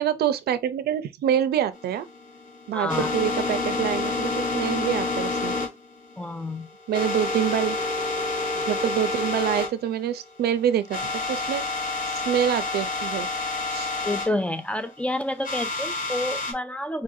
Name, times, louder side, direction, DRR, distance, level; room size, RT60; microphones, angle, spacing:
voice 1, 0.0-2.1 2.7-5.5 6.9-7.8 8.5-11.6 12.1-13.3 13.7-13.9, right 10 dB, 75° right, 0.5 m, -26 dB
sound 1, 1.7-9.7 10.0-10.1 10.5-10.6 10.9-14.3 15.4-16.5, left 3 dB, 55° left, 1.1 m, -28 dB
voice 2, 2.7-3.1 6.2-6.7 14.0-17.0, left 1 dB, 5° left, 0.3 m, -29 dB
4.3 x 2.5 x 2.6 m
cardioid pair, 100°, 16 cm